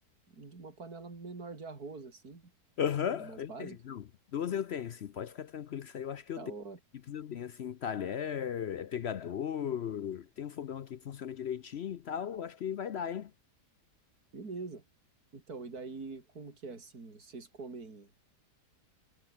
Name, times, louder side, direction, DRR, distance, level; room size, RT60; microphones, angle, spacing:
voice 1, 0.3-2.4 3.2-3.8 6.4-6.8 14.3-14.8 15.3-18.1, right 4 dB, 65° right, 4.2 m, -44 dB
voice 2, 2.8-4.0 4.3-6.5 7.1-13.3, left 8 dB, 60° left, 0.6 m, -36 dB
omnidirectional pair, 1.8 m